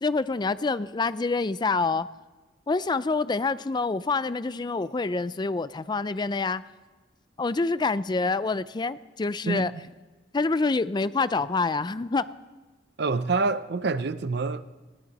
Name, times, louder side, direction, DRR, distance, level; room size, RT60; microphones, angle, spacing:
voice 1, 0.0-2.1 2.7-6.6 7.4-9.7 10.3-12.2, left 3 dB, 25° left, 0.4 m, -26 dB
voice 2, 9.5-9.8 13.0-14.6, right 3 dB, 65° right, 0.6 m, -27 dB
19.0 x 16.0 x 4.1 m
head